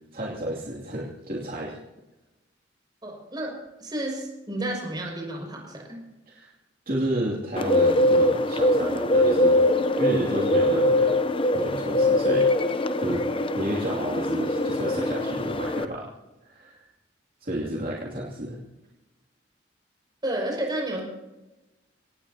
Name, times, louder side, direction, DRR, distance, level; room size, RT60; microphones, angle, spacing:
voice 1, 0.1-1.8 6.3-6.5 6.9-9.6 10.0-11.2 11.5-12.5 13.0-13.3 13.5-16.1 16.4-16.8 17.4-18.6, right 1 dB, 50° right, -4 dB, 2.7 m, -31 dB
voice 2, 3.0-3.5 3.8-6.0 20.2-21.0, right 1 dB, 25° right, -1 dB, 6.2 m, -31 dB
Bird, 7.6-15.8, left 1 dB, 30° left, 0.7 m, -22 dB
26.0 x 18.5 x 2.9 m, 1.0 s
head